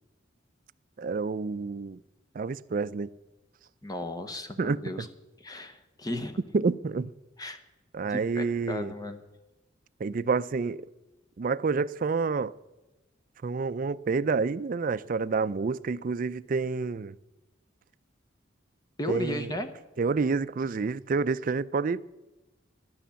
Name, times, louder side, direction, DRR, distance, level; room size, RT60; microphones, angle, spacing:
voice 1, 1.0-2.0 2.3-3.1 4.6-5.1 6.5-7.1 7.9-8.9 10.0-10.9 11.4-12.5 13.4-17.2 19.1-19.5 20.0-22.0, right 4 dB, 45° right, 0.4 m, -28 dB
voice 2, 3.8-5.1 5.4-6.4 7.4-7.6 8.1-9.2 19.0-19.7, left 1 dB, 20° left, 0.9 m, -35 dB
12.5 x 10.0 x 6.9 m
head